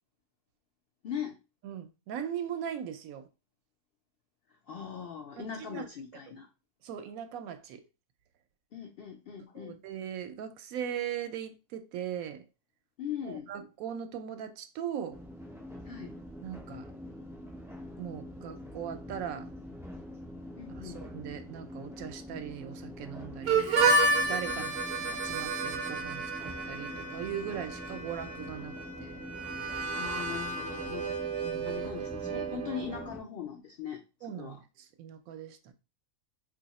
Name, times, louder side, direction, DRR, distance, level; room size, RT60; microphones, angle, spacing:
voice 1, 1.0-1.3 4.7-6.5 8.7-9.8 13.0-13.5 15.8-16.1 20.6-21.0 24.5-24.7 30.0-31.2 31.6-34.0 34.3-34.6, left 8 dB, 75° left, 0.5 m, -40 dB
voice 2, 1.6-3.2 5.4-5.9 6.8-7.8 9.5-12.4 13.2-15.2 16.4-16.9 18.0-19.5 20.7-29.2 31.4-31.8 34.2-35.7, right 9 dB, 80° right, 1.0 m, -39 dB
sound 1, 15.1-33.2, left 1 dB, 5° right, 0.3 m, -45 dB
Harmonica, 23.5-33.1, right 3 dB, 55° right, 0.7 m, -31 dB
2.7 x 2.5 x 4.1 m
omnidirectional pair, 1.5 m